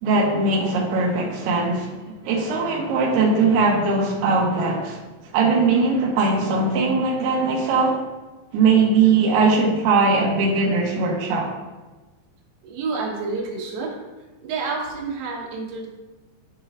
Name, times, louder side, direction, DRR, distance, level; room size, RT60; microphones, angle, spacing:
voice 1, 0.0-2.0 2.2-5.0 5.3-8.0 8.5-11.5, right 4 dB, 90° right, -2 dB, 2.2 m, -20 dB
voice 2, 12.6-14.0 14.4-15.9, right 4 dB, 70° right, -2 dB, 2.4 m, -29 dB
11.5 x 5.4 x 2.4 m, 1.2 s
omnidirectional pair, 6.0 m